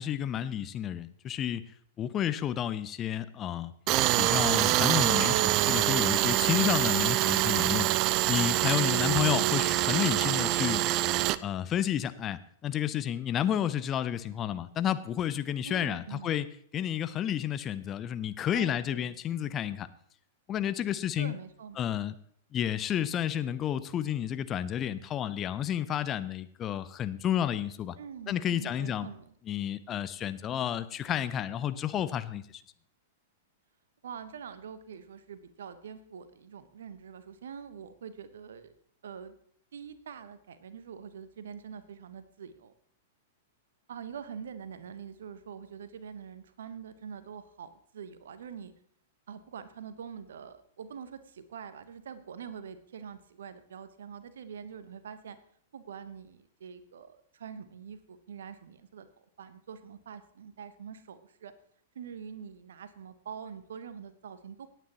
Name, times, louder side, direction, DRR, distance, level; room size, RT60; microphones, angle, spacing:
voice 1, 0.0-1.6 2.0-3.7 4.2-7.9 8.2-10.8 11.4-16.4 16.7-19.9 20.5-21.4 21.8-22.1 22.5-28.0 28.3-29.1 29.5-32.6, left 10 dB, 25° left, 13 dB, 0.6 m, -31 dB
Tools, 3.9-11.4, right 16 dB, 35° right, 0.4 m, -25 dB
voice 2, 15.6-16.3 18.5-19.1 19.4-19.5 21.2-21.9 28.0-29.3 34.0-38.7 39.0-39.3 39.7-42.7 43.9-48.7 49.3-55.4 55.7-59.1 59.4-61.5 61.9-64.7, right 7 dB, 60° right, 13 dB, 1.0 m, -44 dB
18.0 x 9.1 x 3.0 m, 0.63 s
figure-of-eight pair, 100°, 0 cm